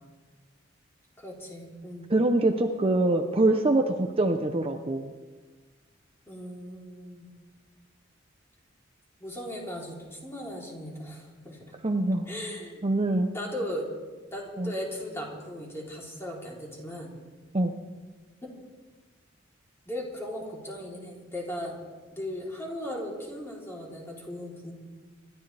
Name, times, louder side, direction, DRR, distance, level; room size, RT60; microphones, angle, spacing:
voice 1, 1.2-2.1 6.3-7.3 9.2-11.7 12.3-12.9 13.3-13.9 14.3-17.1 18.4-18.5 19.8-21.8 22.1-24.7, left 1 dB, 15° left, -3 dB, 3.4 m, -37 dB
voice 2, 2.1-5.1 11.8-12.3 12.8-13.3 14.6-14.7 17.5-17.7, right 2 dB, 30° right, 5 dB, 0.7 m, -24 dB
27.0 x 13.0 x 3.4 m, 1.3 s
head